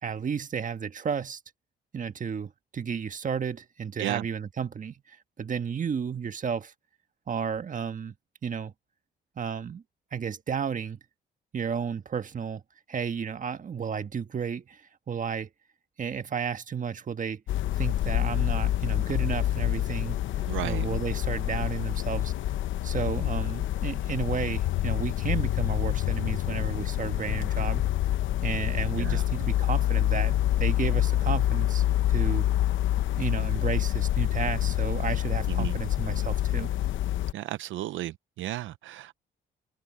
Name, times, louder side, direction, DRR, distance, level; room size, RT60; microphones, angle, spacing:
voice 1, 0.0-1.4 1.9-6.7 7.3-8.1 8.4-8.7 9.4-9.8 10.1-11.0 11.5-12.6 12.9-15.5 16.0-17.4 17.7-20.2 20.6-22.3 22.8-27.8 28.4-32.5 33.2-36.7, right 7 dB, 40° right, 1.5 m, -32 dB
sound 1, 17.5-37.3, left 13 dB, 75° left, 0.8 m, -27 dB
voice 2, 20.5-20.9 29.0-29.2 35.5-35.7 37.3-39.2, right 14 dB, 75° right, 0.5 m, -34 dB
cardioid pair, 90°, 20 cm